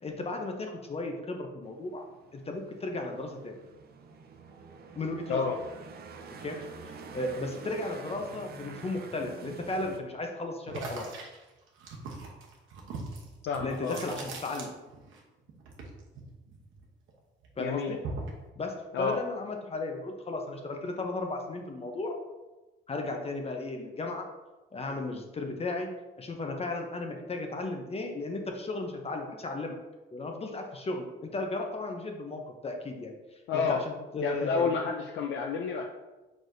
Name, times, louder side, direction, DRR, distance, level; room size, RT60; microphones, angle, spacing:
voice 1, 0.0-2.0 2.3-3.5 4.9-5.5 6.4-6.6 7.1-11.0 13.6-14.7 17.6-18.0 18.6-22.1 22.9-24.3 24.7-25.9 26.2-29.8 30.1-33.1 33.7-34.7, left 2 dB, 30° left, 3 dB, 0.6 m, -35 dB
sound 1, 1.6-10.0, right 5 dB, 55° right, 0.6 m, -47 dB
sound 2, 10.7-15.2 15.5-17.1 17.4-18.4, right 3 dB, 80° right, 0.9 m, -41 dB
voice 2, 13.5-14.0 17.6-18.0 18.9-19.2 33.5-33.8 34.2-35.8, left 5 dB, 70° left, 2 dB, 0.4 m, -29 dB
4.6 x 4.1 x 2.6 m, 1.1 s
cardioid pair, 90°, 20 cm